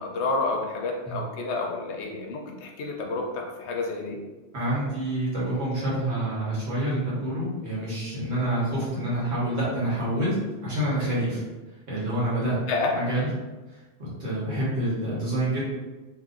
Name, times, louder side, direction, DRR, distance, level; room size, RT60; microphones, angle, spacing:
voice 1, 0.0-4.2 12.7-12.9, left 3 dB, 80° left, 1 dB, 0.9 m, -29 dB
voice 2, 4.5-10.4 10.6-11.4 11.9-12.6 12.9-13.3 13.7-15.6, right 1 dB, 75° right, -8 dB, 1.5 m, -27 dB
2.9 x 2.7 x 2.4 m, 1.2 s
omnidirectional pair, 1.1 m